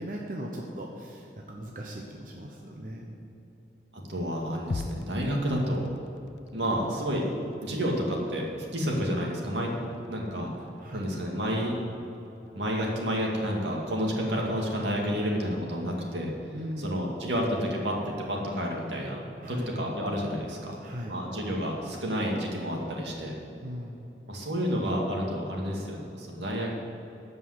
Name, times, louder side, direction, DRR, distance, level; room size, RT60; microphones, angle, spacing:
voice 1, 0.0-3.1 6.8-6.9 10.8-11.1 16.5-16.9 19.4-19.7 20.8-21.1 23.6-24.0, equal, 50° right, -1 dB, 1.0 m, -38 dB
voice 2, 3.9-5.9 6.5-7.2 7.6-8.4 8.7-9.7 10.1-10.5 10.9-11.7 12.5-16.3 16.8-19.2 19.5-20.8 21.1-23.3 24.3-26.7, equal, 85° right, -1 dB, 2.2 m, -30 dB
sound 1, 4.7-22.9, left 3 dB, 85° left, 0.5 m, -48 dB
13.5 x 5.5 x 8.1 m, 3.0 s
head